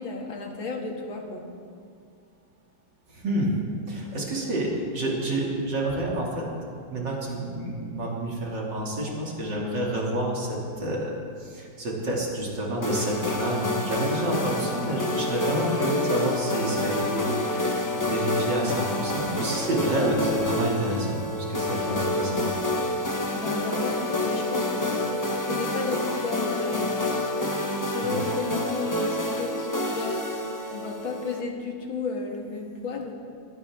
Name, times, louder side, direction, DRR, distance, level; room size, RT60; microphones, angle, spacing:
voice 1, 0.0-1.5 23.3-30.4 30.7-33.1, left 4 dB, 85° left, 1 dB, 2.6 m, -33 dB
voice 2, 3.1-3.5 3.9-6.5 6.9-21.2 21.5-22.6 28.0-28.2, right 1 dB, 65° right, -3 dB, 3.3 m, -29 dB
sound 1, 12.8-31.4, left 1 dB, 20° left, 0.5 m, -28 dB
21.0 x 17.0 x 3.7 m, 2.3 s
omnidirectional pair, 2.1 m